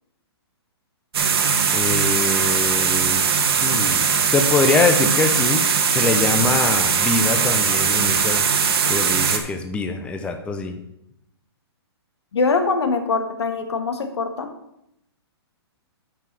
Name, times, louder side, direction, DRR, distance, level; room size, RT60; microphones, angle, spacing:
sound 1, 1.1-9.4, right 6 dB, 70° right, 1.5 m, -20 dB
voice 1, 1.7-3.3 3.6-8.5 8.9-10.8, left 4 dB, 10° left, 6 dB, 0.6 m, -24 dB
voice 2, 12.3-14.5, left 4 dB, 80° left, 7 dB, 1.6 m, -23 dB
9.0 x 5.6 x 6.1 m, 0.81 s
hypercardioid pair, 150°, 14 cm